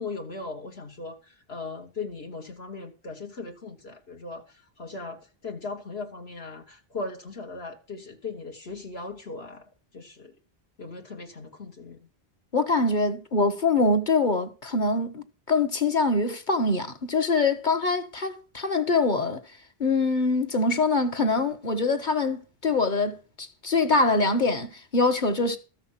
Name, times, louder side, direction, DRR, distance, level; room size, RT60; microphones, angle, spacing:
voice 1, 0.0-9.7 9.9-10.3 10.8-12.0, left 3 dB, 75° left, 2.0 m, -38 dB
voice 2, 12.5-19.4 19.8-25.6, left 3 dB, 50° left, 1.5 m, -24 dB
14.0 x 5.9 x 7.3 m
omnidirectional pair, 1.1 m